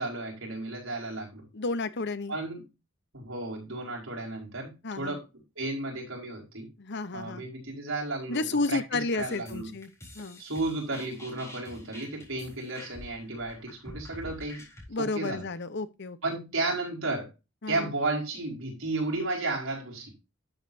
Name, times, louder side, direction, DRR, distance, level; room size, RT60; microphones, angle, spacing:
voice 1, 0.0-1.5 2.3-2.6 3.1-5.2 5.6-6.7 7.1-8.8 9.1-9.7 10.4-14.7 15.1-15.5 16.2-17.3 17.7-20.1, right 2 dB, 75° right, 4.8 m, -33 dB
voice 2, 1.5-2.4 4.8-5.2 6.8-7.4 8.3-10.4 14.9-16.4 17.6-17.9, left 3 dB, 55° left, 0.9 m, -32 dB
sound 1, 9.2-14.9, left 1 dB, 15° left, 4.0 m, -47 dB
12.0 x 7.3 x 2.7 m
head